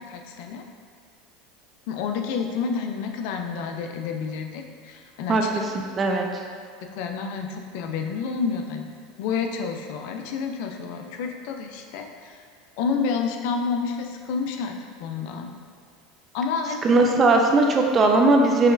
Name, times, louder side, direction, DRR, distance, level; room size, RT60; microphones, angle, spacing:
voice 1, 0.1-0.6 1.9-5.5 6.8-8.9 9.2-12.4 12.8-14.7 15.0-15.5 16.3-16.8, left 5 dB, 65° left, 5 dB, 0.4 m, -29 dB
voice 2, 5.3-6.3 16.8-18.7, right 2 dB, 30° right, 2 dB, 0.4 m, -19 dB
5.6 x 3.0 x 2.6 m, 2.1 s
supercardioid pair, 110°, 0 cm